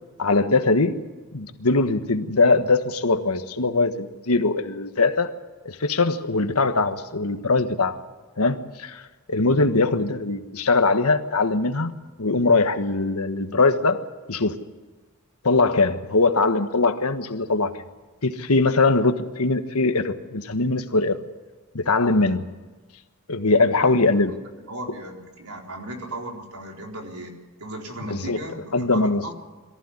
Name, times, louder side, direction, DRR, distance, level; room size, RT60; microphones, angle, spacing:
voice 1, 0.2-0.9 1.3-5.3 5.6-8.0 8.4-9.0 9.3-11.9 12.2-14.0 14.3-14.5 15.4-17.7 18.2-21.2 21.7-22.5 23.3-24.3 28.3-28.4 28.7-29.3, left 3 dB, 85° left, 8 dB, 1.5 m, -21 dB
voice 2, 24.7-29.3, right 1 dB, 90° right, 1 dB, 4.2 m, -36 dB
23.0 x 14.5 x 9.8 m, 1.3 s
head